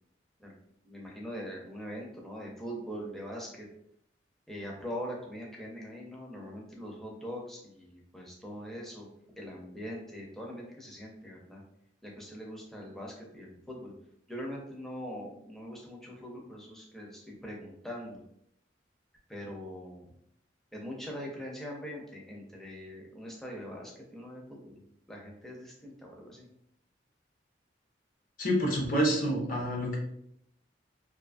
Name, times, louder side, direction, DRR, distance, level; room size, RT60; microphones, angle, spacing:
voice 1, 0.8-3.7 4.5-9.1 9.4-11.6 12.0-13.9 14.3-18.2 19.3-20.1 20.7-24.8 25.1-26.5, equal, ahead, -2 dB, 0.4 m, -42 dB
voice 2, 28.4-30.0, equal, 45° left, -2 dB, 0.7 m, -28 dB
2.6 x 2.3 x 2.4 m, 0.75 s
head